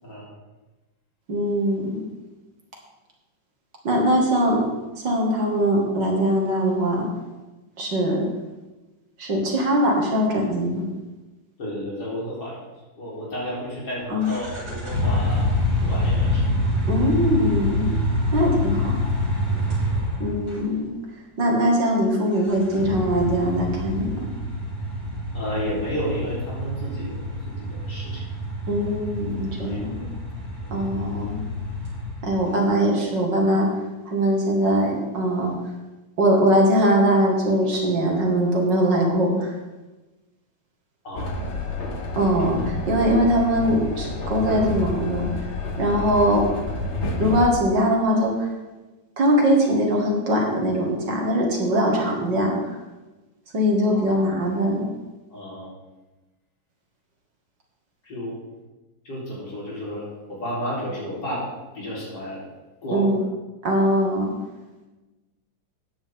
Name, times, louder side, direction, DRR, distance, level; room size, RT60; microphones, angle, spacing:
voice 1, 1.3-2.0 3.8-4.6 5.0-7.1 7.8-8.2 9.2-10.8 14.1-14.3 16.9-17.9 18.3-18.9 20.2-20.9 21.4-24.3 28.7-30.0 30.7-31.4 32.2-33.7 34.1-35.5 36.2-39.5 42.2-45.3 45.8-46.5 47.2-48.5 49.2-52.6 53.5-54.8 62.9-63.2 63.6-64.3, equal, 70° right, -1 dB, 2.8 m, -21 dB
voice 2, 11.6-12.6 13.0-15.5 15.8-16.6 19.7-19.8 25.3-28.2 28.8-28.9 29.6-30.1 30.6-30.7 41.0-41.3 54.1-54.2 55.3-55.7 58.0-58.3 59.0-61.5 61.7-62.4 62.8-63.1, equal, 65° left, -6 dB, 4.7 m, -32 dB
sound 1, 14.2-20.6 22.4-32.4, left 1 dB, 45° right, 4.8 m, -26 dB
Train, 41.2-47.5, left 2 dB, 40° left, 1.4 m, -29 dB
13.0 x 9.7 x 3.7 m, 1.1 s
omnidirectional pair, 2.0 m